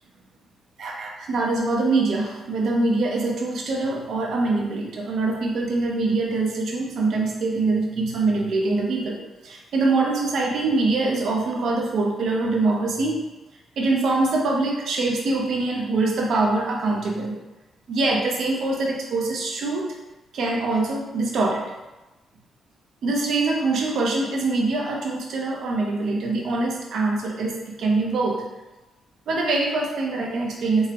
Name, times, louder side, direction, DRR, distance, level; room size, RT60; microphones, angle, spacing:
voice 1, 0.8-9.2 9.4-13.2 13.8-17.3 17.9-19.9 20.3-21.6 23.0-28.4 29.3-30.9, right 3 dB, 65° right, -1 dB, 0.6 m, -24 dB
3.6 x 2.0 x 2.8 m, 1.1 s
wide cardioid pair, 165°, 0 cm